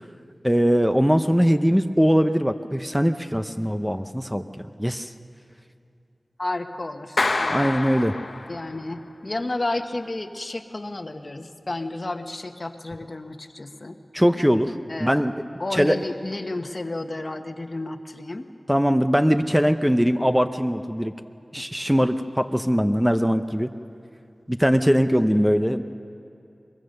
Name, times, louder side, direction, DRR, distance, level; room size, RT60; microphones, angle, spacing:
voice 1, 0.4-4.4 4.8-5.1 7.5-8.2 14.1-14.7 15.0-15.3 15.7-16.0 18.7-21.1 21.5-23.7 24.5-25.8, equal, 5° right, 8 dB, 0.7 m, -21 dB
voice 2, 6.4-7.7 8.5-14.0 14.9-15.2 15.6-18.5, left 2 dB, 50° left, 7 dB, 1.1 m, -32 dB
Clapping, 7.2-8.9, left 2 dB, 65° left, 0.8 m, -27 dB
23.0 x 21.5 x 6.6 m, 2.6 s
wide cardioid pair, 55°, 0 cm